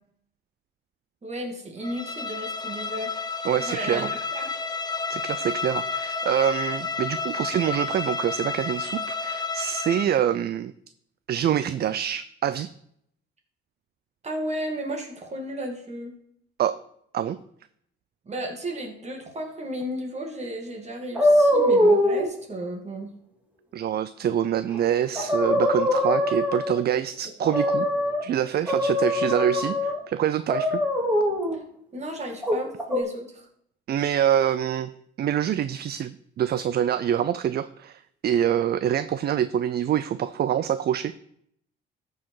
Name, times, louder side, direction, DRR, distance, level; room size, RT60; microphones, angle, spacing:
voice 1, 1.2-3.1 3.6-4.5 14.2-16.1 18.3-23.1 31.9-33.5, right 1 dB, 35° right, 2 dB, 2.6 m, -33 dB
Bowed string instrument, 1.8-10.2, left 4 dB, 20° left, 0.9 m, -31 dB
voice 2, 3.4-4.1 5.1-10.7 11.3-12.7 16.6-16.8 17.1-17.4 23.7-27.9 28.2-30.8 33.9-34.9 35.2-41.2, right 10 dB, 55° right, 13 dB, 0.5 m, -25 dB
sound 1, 21.1-22.3 24.7-24.8 25.1-26.9 27.4-28.2 28.7-30.0 30.5-31.6 32.4-33.0, left 1 dB, 10° right, 2.6 m, -22 dB
13.5 x 4.8 x 4.7 m, 0.69 s
cardioid pair, 90°, 20 cm